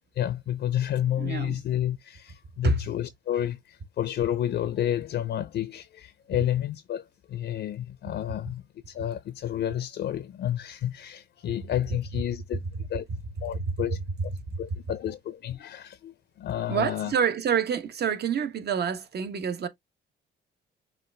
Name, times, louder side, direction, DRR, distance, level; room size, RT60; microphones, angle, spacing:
voice 1, 0.0-12.6 12.9-13.0 13.4-14.0 14.6-17.1, left 11 dB, 60° left, 0.5 m, -30 dB
voice 2, 1.2-1.6 2.6-2.8 13.1-13.2 13.5-13.7 14.5-14.6 16.7-19.7, right 6 dB, 55° right, 1.0 m, -27 dB
5.7 x 2.4 x 3.3 m
cardioid pair, 90°, 20 cm